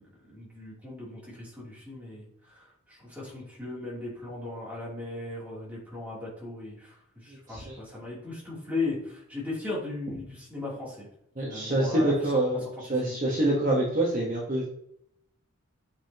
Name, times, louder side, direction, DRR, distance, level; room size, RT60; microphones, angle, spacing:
voice 1, 0.0-11.1 11.4-12.1 13.0-13.1, left 3 dB, 5° right, -6 dB, 3.0 m, -37 dB
voice 2, 7.3-7.8 11.4-14.7, right 1 dB, 35° right, -3 dB, 1.2 m, -26 dB
8.5 x 5.4 x 2.9 m, 0.72 s
head